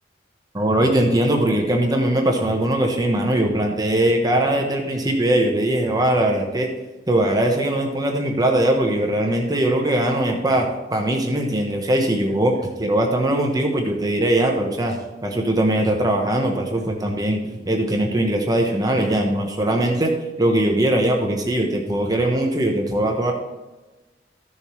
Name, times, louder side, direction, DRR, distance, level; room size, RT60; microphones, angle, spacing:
voice 1, 0.5-6.7 7.1-12.5 12.8-15.0 15.2-23.3, right 1 dB, 20° right, 2 dB, 1.0 m, -20 dB
13.5 x 7.0 x 3.2 m, 1.1 s
head